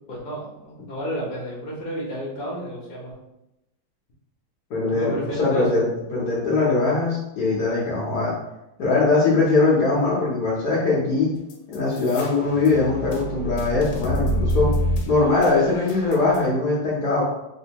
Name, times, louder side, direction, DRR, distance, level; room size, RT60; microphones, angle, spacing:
voice 1, 0.1-3.1 4.9-5.8, equal, 40° left, -5 dB, 1.0 m, -31 dB
voice 2, 4.7-8.3 8.8-11.3 11.7-14.7 15.1-17.2, left 3 dB, 65° left, -6 dB, 1.2 m, -21 dB
sound 1, 11.5-16.4, equal, 85° left, 1.4 m, -26 dB
3.5 x 2.6 x 2.8 m, 0.89 s
omnidirectional pair, 2.1 m